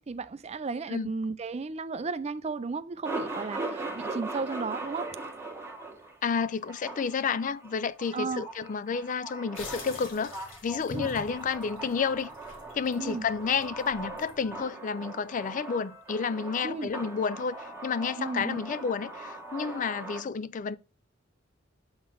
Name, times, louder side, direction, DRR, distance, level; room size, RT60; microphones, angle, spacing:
voice 1, 0.0-5.2 8.1-8.5 10.9-11.1 13.0-13.2 16.6-16.9 18.2-18.6, right 4 dB, 35° right, 0.4 m, -34 dB
Male speech man speaking, 3.0-20.2, right 2 dB, 15° right, 1.5 m, -40 dB
voice 2, 6.2-12.3 12.7-20.8, left 5 dB, 40° left, 0.4 m, -30 dB
sound 1, 9.6-14.6, left 2 dB, 75° left, 1.9 m, -46 dB
7.1 x 3.8 x 4.6 m
head